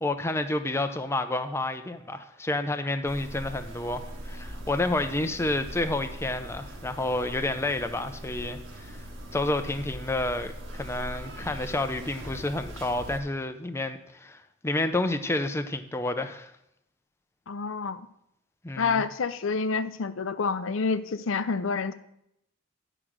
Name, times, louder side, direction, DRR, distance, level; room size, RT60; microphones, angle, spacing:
voice 1, 0.0-9.0 9.3-16.5 18.6-19.0, left 2 dB, 15° left, 7 dB, 0.5 m, -30 dB
sound 1, 3.1-13.2, equal, 60° right, 1.5 m, -41 dB
voice 2, 17.5-18.1 18.8-21.9, left 4 dB, 65° left, 12 dB, 0.5 m, -28 dB
11.0 x 5.0 x 6.0 m, 0.78 s
head